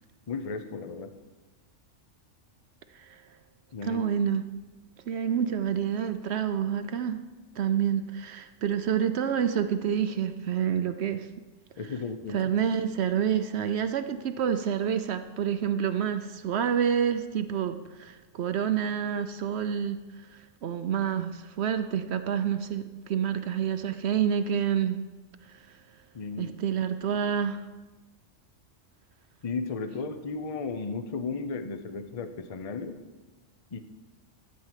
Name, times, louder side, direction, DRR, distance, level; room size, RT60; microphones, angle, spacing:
voice 1, 0.3-1.1 3.7-4.0 11.8-12.5 26.1-26.5 29.4-33.0 33.7-33.8, left 4 dB, 35° left, 9 dB, 0.6 m, -34 dB
voice 2, 3.8-4.4 5.1-7.2 7.6-11.3 12.3-20.0 20.6-25.0 26.4-27.7, right 8 dB, 65° right, 10 dB, 0.8 m, -28 dB
13.5 x 4.6 x 8.2 m, 1.2 s
omnidirectional pair, 1.3 m